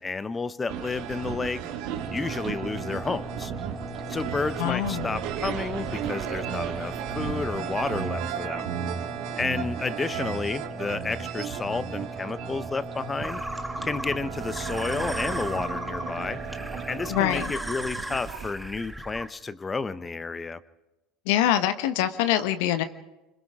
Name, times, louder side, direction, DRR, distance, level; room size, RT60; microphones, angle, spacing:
voice 1, 0.0-1.6 2.1-3.5 4.1-8.7 9.4-13.4 13.8-16.4 16.9-20.6, left 4 dB, 20° left, 15 dB, 0.9 m, -31 dB
sound 1, 0.7-18.5, right 8 dB, 65° right, 2.1 m, -35 dB
sound 2, 1.9-17.4, right 2 dB, 25° right, 3.8 m, -39 dB
voice 2, 4.6-5.2 17.1-17.5 21.3-22.8, left 12 dB, 65° left, 10 dB, 1.2 m, -24 dB
sound 3, 13.2-19.3, right 1 dB, ahead, 1.4 m, -36 dB
28.5 x 25.5 x 3.7 m, 0.99 s
hypercardioid pair, 75°, 0 cm